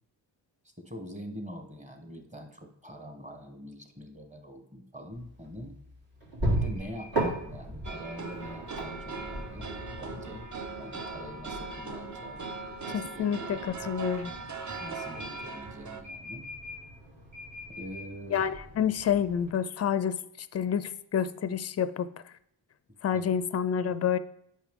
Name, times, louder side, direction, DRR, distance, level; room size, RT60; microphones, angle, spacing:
voice 1, 0.8-5.8 6.5-9.7 10.0-10.5 10.8-12.5 12.9-13.6 14.8-16.5 17.8-18.5 23.1-23.2, equal, 15° right, 4 dB, 1.1 m, -44 dB
sound 1, 5.1-19.5, right 1 dB, 65° right, 3.0 m, -38 dB
sound 2, 7.8-16.0, right 4 dB, 40° right, 0.7 m, -40 dB
voice 2, 12.9-14.3 18.3-22.1 23.0-24.2, left 8 dB, 35° left, 13 dB, 0.4 m, -28 dB
8.3 x 5.5 x 3.6 m, 0.75 s
wide cardioid pair, 105°, 48 cm